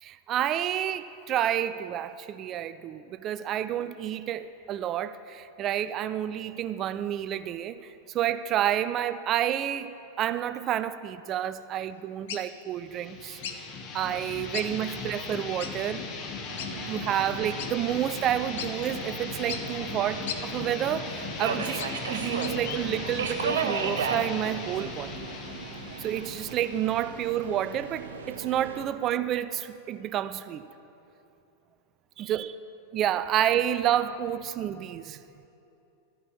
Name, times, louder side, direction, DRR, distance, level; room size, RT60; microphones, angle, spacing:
voice 1, 0.0-9.9 10.2-13.4 13.9-16.1 16.9-25.3 26.0-30.6 32.2-32.6 32.9-35.2, right 11 dB, 35° right, 0.4 m, -29 dB
sound 1, 12.3-12.5 13.4-13.6 14.5-14.7 15.0-15.1 15.6-15.7 16.6-16.7 17.6-17.7 18.2-18.3 18.6-18.7 19.5-19.6 20.3-20.4 21.3-22.0 22.4-22.8, left 9 dB, 55° left, 0.6 m, -36 dB
sound 2, 12.8-28.2, left 4 dB, 35° left, 1.0 m, -38 dB
Subway metro underground, 16.5-28.9, right 5 dB, 65° right, 0.7 m, -36 dB
12.5 x 5.5 x 7.1 m
figure-of-eight pair, 90°, 0 cm